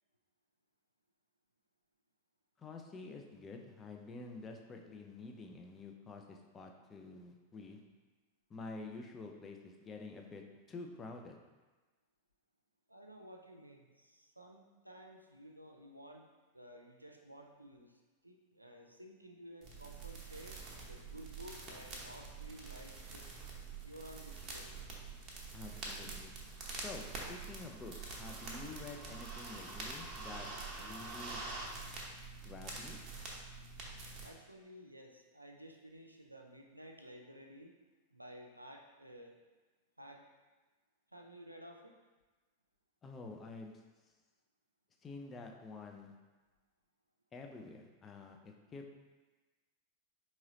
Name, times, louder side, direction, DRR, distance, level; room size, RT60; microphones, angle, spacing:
voice 1, 2.6-7.8 8.5-10.4 10.7-11.4 25.5-26.3 26.8-30.5 30.8-31.4 32.4-33.0 43.0-43.8 45.0-46.1 47.3-49.0, left 3 dB, 20° left, 2 dB, 0.5 m, -49 dB
voice 2, 12.9-16.3 16.5-23.3 23.8-24.7 34.2-37.7 38.1-39.4 40.0-40.2 41.1-42.0, equal, 85° right, 2 dB, 0.4 m, -54 dB
sound 1, 19.6-34.3, right 3 dB, 30° right, 0.8 m, -46 dB
4.7 x 3.0 x 2.8 m, 1.2 s
figure-of-eight pair, 90°, 0 cm